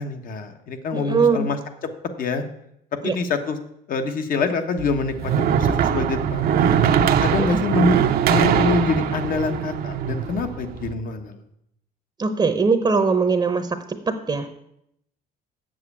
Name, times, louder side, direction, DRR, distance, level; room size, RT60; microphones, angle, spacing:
voice 1, 0.0-1.6 2.2-2.4 3.0-3.6 3.9-6.7 7.2-8.0 8.3-11.4, left 4 dB, 55° left, 7 dB, 1.3 m, -25 dB
voice 2, 0.9-1.5 3.0-3.2 7.4-7.6 12.2-14.0 14.3-14.5, right 4 dB, 25° right, 8 dB, 0.8 m, -21 dB
sound 1, 4.8-10.9, right 8 dB, 65° right, 0.8 m, -21 dB
7.8 x 7.1 x 8.5 m, 0.77 s
cardioid pair, 110°, 17 cm